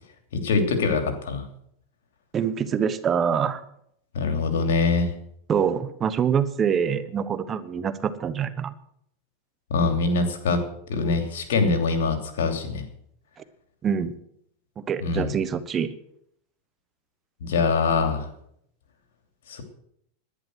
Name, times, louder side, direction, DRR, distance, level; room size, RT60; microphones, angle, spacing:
voice 1, 0.3-1.5 4.1-5.1 9.7-10.6 10.9-12.9 15.0-15.3 17.4-18.2 19.5-19.6, left 4 dB, 80° left, 6 dB, 3.0 m, -23 dB
voice 2, 2.3-3.6 5.5-8.7 13.8-14.1 14.8-15.9, right 7 dB, 25° right, 13 dB, 1.0 m, -25 dB
11.0 x 10.5 x 7.8 m, 0.71 s
supercardioid pair, 125°, 0 cm